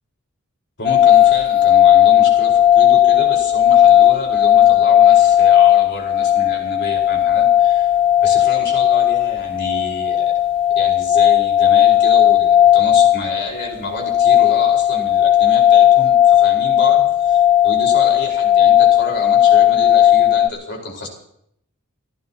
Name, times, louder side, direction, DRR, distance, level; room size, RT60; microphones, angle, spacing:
voice 1, 0.8-7.9 8.2-10.3 10.7-21.1, left 2 dB, 55° left, 0 dB, 4.7 m, -29 dB
sound 1, 0.8-20.5, left 11 dB, 25° left, 0.6 m, -14 dB
29.5 x 15.0 x 2.9 m, 0.72 s
head